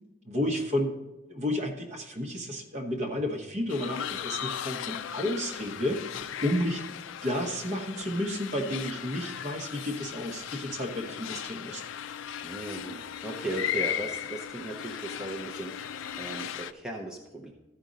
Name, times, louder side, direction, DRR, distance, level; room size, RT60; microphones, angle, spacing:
voice 1, 0.2-0.9 1.3-6.8 7.2-11.8, left 1 dB, 35° right, 1 dB, 1.1 m, -31 dB
sound 1, 3.7-16.7, left 10 dB, 65° left, 0.3 m, -37 dB
voice 2, 12.4-17.5, right 2 dB, 5° right, -1 dB, 0.7 m, -37 dB
14.0 x 5.1 x 4.0 m, 1.0 s
head